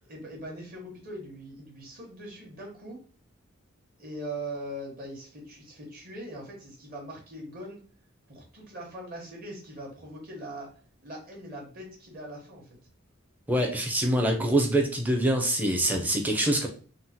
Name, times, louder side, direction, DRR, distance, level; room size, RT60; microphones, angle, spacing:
voice 1, 0.0-3.0 4.0-7.8 8.3-12.7, right 1 dB, 45° right, -1 dB, 1.1 m, -41 dB
voice 2, 13.5-16.7, right 1 dB, 10° right, 1 dB, 0.5 m, -25 dB
3.6 x 2.1 x 2.8 m, 0.42 s
head